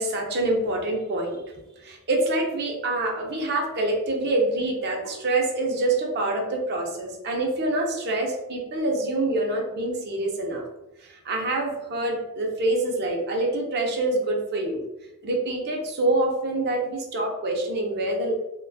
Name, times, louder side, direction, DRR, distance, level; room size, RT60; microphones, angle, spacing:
voice 1, 0.0-1.4 1.8-10.6 11.0-14.8 15.2-18.3, right 2 dB, 50° right, 1 dB, 0.4 m, -26 dB
2.3 x 2.2 x 2.5 m, 0.97 s
head